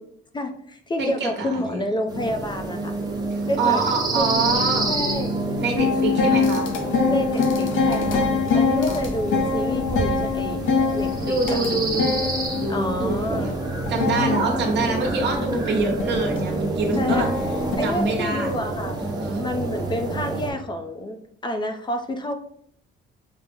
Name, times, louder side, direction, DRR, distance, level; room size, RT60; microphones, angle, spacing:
voice 1, 0.3-2.9 3.5-3.8 4.2-4.4 4.9-5.4 7.1-10.7 10.9-12.0 12.7-13.5 17.0-17.2 17.8-19.0 19.4-21.2 21.4-22.3, left 1 dB, 20° left, 6 dB, 0.4 m, -28 dB
voice 2, 1.0-1.8 3.3-5.0 5.6-6.7 8.9-9.0 11.2-12.3 12.5-13.5 13.9-17.3 17.8-18.6 19.0-19.4, right 3 dB, 60° right, 0 dB, 1.1 m, -25 dB
sound 1, 2.1-20.5, right 2 dB, 20° right, 0.7 m, -28 dB
sound 2, 5.8-17.8, left 4 dB, 70° left, 0.6 m, -25 dB
5.7 x 2.0 x 3.4 m, 0.67 s
cardioid pair, 140°, 21 cm